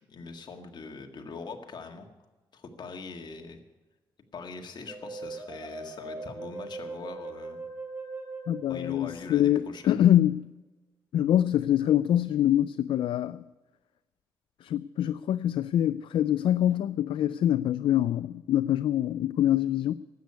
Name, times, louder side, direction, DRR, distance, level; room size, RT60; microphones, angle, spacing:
voice 1, 0.1-2.1 2.5-3.6 4.3-7.6 8.7-10.0, left 4 dB, 55° left, 1.8 m, -42 dB
sound 1, 4.9-9.7, right 3 dB, 25° right, 2.4 m, -40 dB
voice 2, 8.5-10.5 11.1-13.4 14.6-19.9, left 11 dB, 75° left, 0.3 m, -25 dB
12.5 x 8.3 x 9.5 m
cardioid pair, 90°, 9 cm